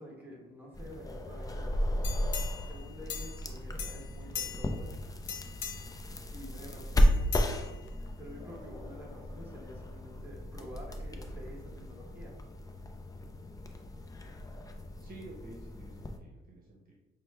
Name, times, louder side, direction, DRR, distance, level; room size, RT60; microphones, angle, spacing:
voice 1, 0.0-1.8 2.7-4.9 6.3-7.4 8.2-12.4, equal, 10° right, -2 dB, 1.3 m, -49 dB
sound 1, 0.7-16.2, equal, 20° left, 0.5 m, -34 dB
sound 2, 2.0-3.5 3.8-4.9 5.2-6.0 7.0-8.1 8.6-8.7, left 7 dB, 70° left, 0.6 m, -40 dB
voice 2, 15.0-16.9, right 2 dB, 45° right, -2 dB, 0.9 m, -50 dB
5.7 x 2.2 x 3.2 m, 1.0 s
cardioid pair, 90°, 20 cm